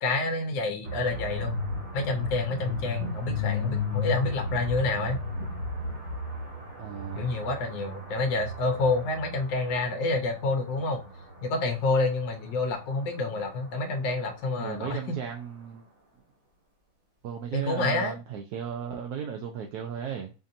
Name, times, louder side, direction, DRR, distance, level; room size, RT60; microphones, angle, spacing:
voice 1, 0.0-1.6 1.9-5.2 7.1-11.0 11.4-15.0 17.5-18.2, left 3 dB, 75° left, 5 dB, 1.4 m, -28 dB
sound 1, 0.8-14.7, left 3 dB, 30° right, 1.4 m, -35 dB
voice 2, 6.8-7.3 14.6-15.9 17.2-20.3, right 8 dB, 70° right, 2 dB, 1.0 m, -35 dB
5.1 x 2.7 x 2.6 m, 0.31 s
omnidirectional pair, 2.0 m